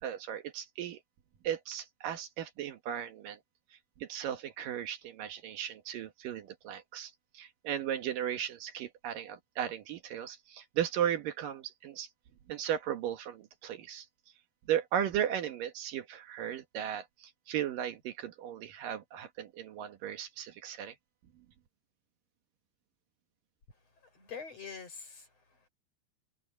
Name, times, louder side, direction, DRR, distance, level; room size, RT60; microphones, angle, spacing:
voice 1, 0.0-1.0 1.4-3.4 4.0-12.1 12.5-14.1 14.7-21.0, right 10 dB, 60° right, 2.7 m, -36 dB
voice 2, 23.7-25.7, left 6 dB, 35° left, 7.2 m, -46 dB
omnidirectional pair, 4.8 m